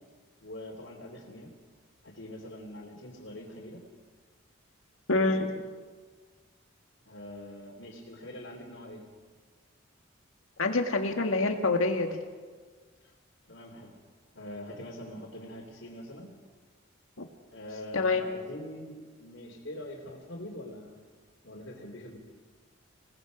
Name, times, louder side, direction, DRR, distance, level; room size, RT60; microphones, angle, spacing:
voice 1, 0.4-1.5 2.0-3.8 7.1-9.0 13.0-13.1 13.5-14.0 14.3-16.3 17.5-21.0 21.4-22.2, left 1 dB, 65° left, -5 dB, 3.1 m, -44 dB
voice 2, 5.1-5.6 10.6-12.2 17.2-17.3 17.9-18.3, left 3 dB, 85° left, 5 dB, 1.9 m, -26 dB
26.5 x 19.0 x 5.2 m, 1.5 s
head